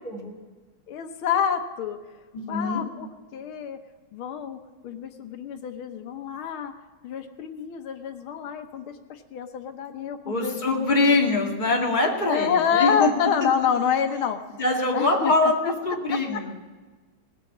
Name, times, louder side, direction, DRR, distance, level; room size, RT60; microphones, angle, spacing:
voice 1, 0.0-0.4 2.3-2.8 10.2-13.1 14.6-16.5, left 2 dB, 20° left, -1 dB, 2.2 m, -23 dB
voice 2, 0.9-2.0 2.5-3.1 3.3-3.8 4.1-6.7 7.0-10.6 10.9-11.3 12.2-14.4 14.9-15.7 16.3-16.4, left 7 dB, 90° left, 6 dB, 1.9 m, -27 dB
19.0 x 8.2 x 7.2 m, 1.4 s
omnidirectional pair, 2.2 m